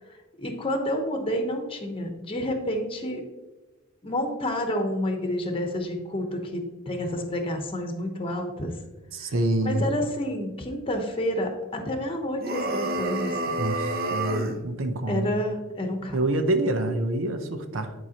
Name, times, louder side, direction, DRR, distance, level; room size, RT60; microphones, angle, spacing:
voice 1, 0.4-3.2 4.0-8.7 9.2-9.3 9.6-13.6 15.1-16.2, left 1 dB, 30° left, 4 dB, 0.9 m, -29 dB
voice 2, 9.1-9.9 13.6-15.3 16.1-17.9, right 1 dB, 80° right, 7 dB, 0.7 m, -26 dB
sound 1, 12.4-14.6, right 2 dB, 50° right, 0.9 m, -28 dB
10.5 x 4.7 x 2.9 m, 1.2 s
head